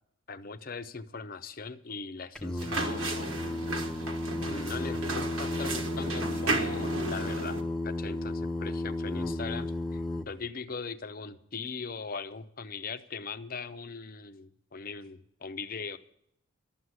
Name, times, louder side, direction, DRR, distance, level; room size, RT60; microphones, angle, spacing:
voice 1, 0.3-3.7 4.4-7.6 7.8-16.0, left 4 dB, 45° left, 11 dB, 0.6 m, -40 dB
Singing, 2.3-10.2, left 1 dB, 5° left, 0.7 m, -33 dB
sound 1, 2.6-7.6, right 3 dB, 75° right, 1.5 m, -34 dB
12.5 x 7.9 x 9.6 m, 0.73 s
head